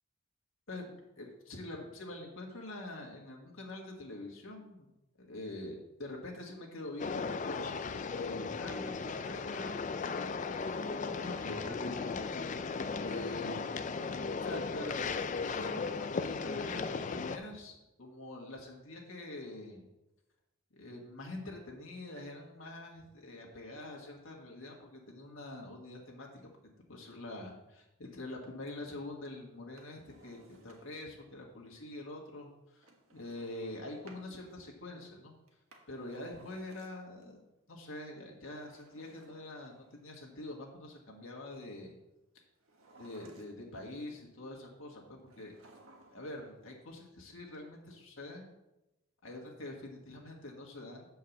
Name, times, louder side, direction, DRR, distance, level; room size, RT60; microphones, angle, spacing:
voice 1, 0.7-4.9 5.2-9.8 10.7-12.3 13.0-13.7 14.4-15.2 15.4-17.7 18.0-19.8 20.7-26.5 26.9-35.4 35.9-37.4 37.7-42.0 43.0-45.6 46.1-48.5 49.2-51.1, left 2 dB, 65° left, -1 dB, 1.8 m, -45 dB
sound 1, 7.0-17.4, left 4 dB, 35° left, 0.4 m, -36 dB
Drawer open or close, 29.6-31.1 32.8-34.3 35.5-37.2 38.5-40.2 42.6-43.8 45.3-46.4 46.6-46.7, right 2 dB, 80° right, 1.5 m, -59 dB
8.8 x 4.7 x 7.1 m, 0.95 s
head